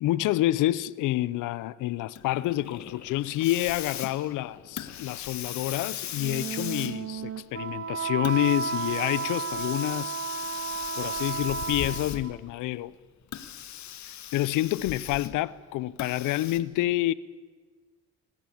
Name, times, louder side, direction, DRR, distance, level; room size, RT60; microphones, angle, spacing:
voice 1, 0.0-10.2 11.0-12.9 14.3-17.1, left 15 dB, 90° left, 0.7 m, -28 dB
Hiss, 2.1-12.5 13.2-15.5 16.0-16.6, left 10 dB, 65° left, 1.5 m, -39 dB
Wind instrument woodwind instrument, 6.1-12.4, right 7 dB, 50° right, 1.5 m, -33 dB
27.0 x 15.0 x 8.6 m
cardioid pair, 90°, 30 cm